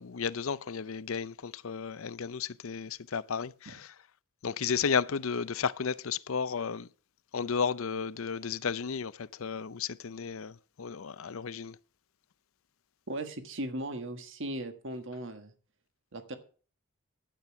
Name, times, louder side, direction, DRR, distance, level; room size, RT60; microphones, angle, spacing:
voice 1, 0.0-3.9 4.4-6.9 7.3-11.8, left 6 dB, 70° left, 0.6 m, -33 dB
voice 2, 13.1-15.5 16.1-16.4, right 1 dB, 60° right, 1.6 m, -37 dB
12.5 x 8.6 x 5.9 m
head